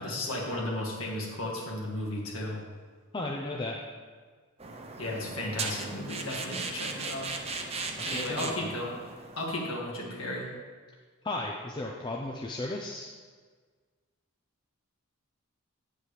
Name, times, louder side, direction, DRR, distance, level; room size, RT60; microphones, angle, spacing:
voice 1, 0.0-2.6 5.0-7.4 8.0-8.9 9.4-10.5, left 1 dB, 65° left, -3 dB, 1.9 m, -34 dB
voice 2, 3.1-3.8 8.1-8.7 11.2-13.1, left 2 dB, 20° left, -1 dB, 0.5 m, -35 dB
sound 1, 4.6-9.6, right 4 dB, 25° right, 0.5 m, -37 dB
9.0 x 8.1 x 3.3 m, 1.5 s
head